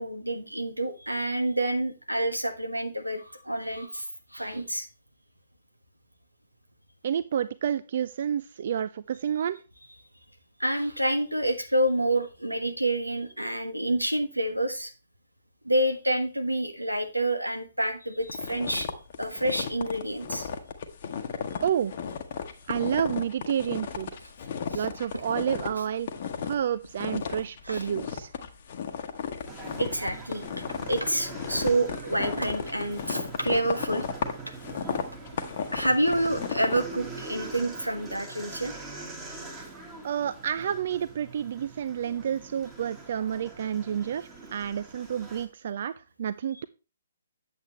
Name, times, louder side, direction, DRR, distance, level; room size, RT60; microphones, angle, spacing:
voice 1, 0.0-4.1 4.3-4.9 10.6-14.9 15.6-18.9 19.2-20.5 24.7-24.9 27.6-27.9 29.8-30.4 30.9-34.0 35.7-38.7, right 1 dB, 85° right, 6 dB, 1.4 m, -28 dB
voice 2, 7.0-9.6 21.6-21.9 22.7-24.1 24.7-26.1 26.4-28.3 40.0-46.6, right 9 dB, 45° right, 15 dB, 0.3 m, -29 dB
sound 1, 18.3-25.7 26.0-26.6 27.0-36.8, left 7 dB, 40° left, 1.0 m, -34 dB
sound 2, 29.5-45.5, right 3 dB, 10° right, 1.6 m, -43 dB
8.6 x 7.6 x 3.1 m, 0.32 s
figure-of-eight pair, 130°, 0 cm